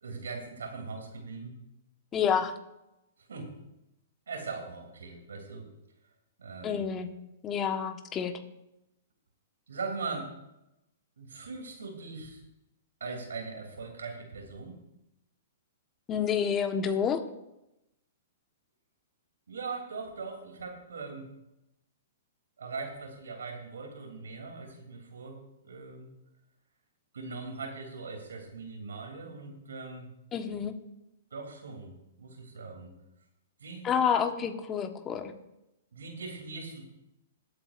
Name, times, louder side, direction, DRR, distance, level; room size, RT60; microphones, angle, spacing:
voice 1, 0.0-1.6 3.3-3.5 4.3-5.7 6.4-6.8 9.7-10.3 11.2-12.4 13.0-14.8 19.5-21.3 22.6-26.1 27.1-30.1 31.3-32.9 33.6-33.9 35.9-36.8, right 4 dB, 85° right, 2 dB, 3.0 m, -40 dB
voice 2, 2.1-2.6 6.6-7.1 7.4-8.3 16.1-17.2 30.3-30.7 33.8-35.3, left 7 dB, 25° left, 6 dB, 1.3 m, -28 dB
21.0 x 8.4 x 2.5 m, 0.89 s
hypercardioid pair, 125°, 0 cm